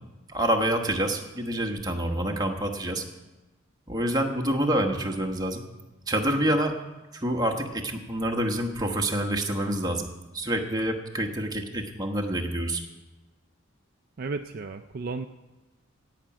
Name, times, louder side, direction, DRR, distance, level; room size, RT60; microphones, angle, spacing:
voice 1, 0.3-3.0 3.9-5.6 6.1-6.8 7.1-10.1 10.3-12.8, right 1 dB, 20° right, 2 dB, 1.2 m, -27 dB
voice 2, 14.2-15.3, right 3 dB, 45° right, 8 dB, 0.4 m, -33 dB
16.5 x 5.9 x 8.7 m, 1.1 s
head